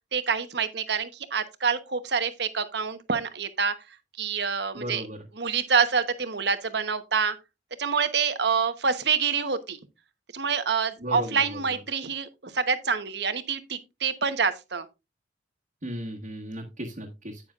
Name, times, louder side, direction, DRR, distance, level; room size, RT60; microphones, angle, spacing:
voice 1, 0.1-3.7 4.2-5.0 5.3-7.3 7.8-9.8 10.3-12.3 12.5-14.9, right 6 dB, 65° right, 1.1 m, -26 dB
voice 2, 4.7-5.2 11.0-11.6 15.8-17.4, equal, 45° right, 1.5 m, -35 dB
9.9 x 9.1 x 2.5 m
head